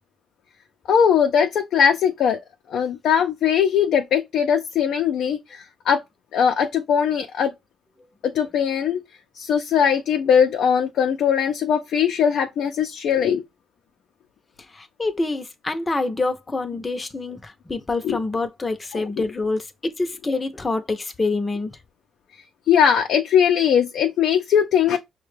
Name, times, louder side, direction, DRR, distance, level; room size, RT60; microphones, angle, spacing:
voice 1, 0.9-2.4 2.7-6.0 6.3-7.5 8.2-9.0 9.4-13.4 18.0-18.2 18.9-19.2 22.7-25.0, left 8 dB, 70° left, 0.5 m, -20 dB
voice 2, 14.7-21.8, left 3 dB, 25° left, 0.7 m, -26 dB
5.5 x 2.2 x 3.2 m
cardioid pair, 90°, 0 cm